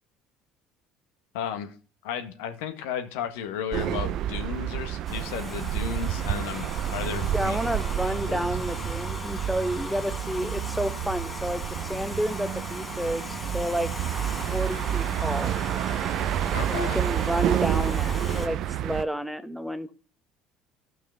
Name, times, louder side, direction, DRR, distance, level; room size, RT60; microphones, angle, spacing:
voice 1, 1.3-1.7 2.0-7.6 8.0-8.5 16.5-17.0, left 9 dB, 80° left, 7 dB, 1.5 m, -34 dB
sound 1, 3.7-19.0, right 11 dB, 60° right, 0.6 m, -29 dB
Domestic sounds home sounds, 5.1-18.5, left 3 dB, 25° left, 1.8 m, -39 dB
voice 2, 7.3-11.6 11.9-13.9 14.5-15.5 16.7-19.9, equal, ahead, 12 dB, 1.0 m, -30 dB
12.5 x 5.8 x 5.7 m, 0.38 s
hypercardioid pair, 70°, 0 cm